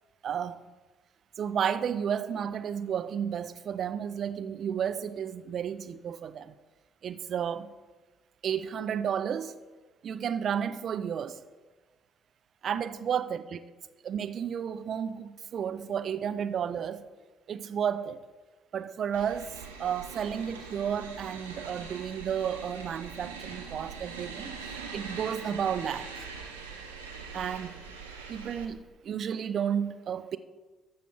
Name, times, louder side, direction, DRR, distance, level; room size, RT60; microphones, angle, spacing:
voice 1, 0.2-0.7 1.4-6.5 7.0-7.7 8.4-9.6 10.0-11.4 12.6-13.6 14.0-17.0 17.5-18.2 18.7-19.5 19.8-26.3 27.3-27.8 28.3-30.4, right 8 dB, 50° right, 0.5 m, -32 dB
sound 1, 19.1-28.6, right 5 dB, 80° right, 0.9 m, -42 dB
13.0 x 6.8 x 4.5 m
figure-of-eight pair, 45°, 0 cm